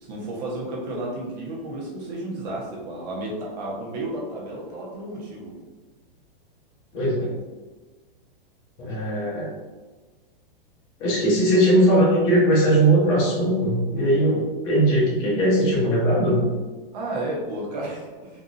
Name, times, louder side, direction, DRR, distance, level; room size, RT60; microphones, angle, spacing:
voice 1, 0.0-5.5 16.9-18.4, right 1 dB, 45° right, -4 dB, 1.0 m, -32 dB
voice 2, 6.9-7.3 8.8-9.5 11.0-16.4, right 1 dB, 40° left, -4 dB, 1.1 m, -20 dB
4.0 x 2.6 x 2.6 m, 1.3 s
supercardioid pair, 155°, 29 cm